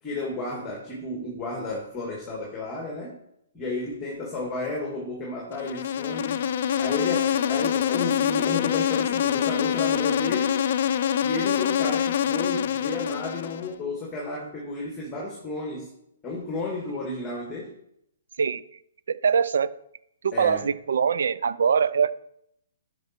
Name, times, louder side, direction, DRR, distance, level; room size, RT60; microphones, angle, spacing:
voice 1, 0.0-3.2 3.5-6.4 6.8-10.6 11.2-15.9 16.2-17.7 20.3-20.6, left 2 dB, 15° left, 2.0 m, -32 dB
Insect, 5.5-13.7, left 9 dB, 55° left, 0.5 m, -25 dB
voice 2, 19.1-19.7 20.2-22.1, right 6 dB, 75° right, 0.5 m, -23 dB
11.0 x 5.9 x 4.5 m
hypercardioid pair, 155°, 0 cm